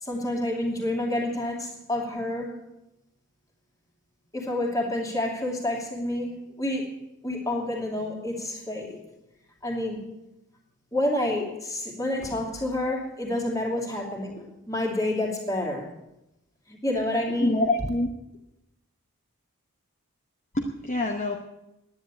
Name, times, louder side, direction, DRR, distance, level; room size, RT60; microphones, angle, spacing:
voice 1, 0.0-2.6 4.3-7.0 7.2-9.0 9.6-10.1 10.9-15.9 16.7-17.6, left 1 dB, 15° left, 0 dB, 2.7 m, -29 dB
voice 2, 17.4-18.1 20.5-21.4, left 2 dB, 30° left, 2 dB, 1.0 m, -26 dB
10.5 x 10.0 x 9.7 m, 0.91 s
head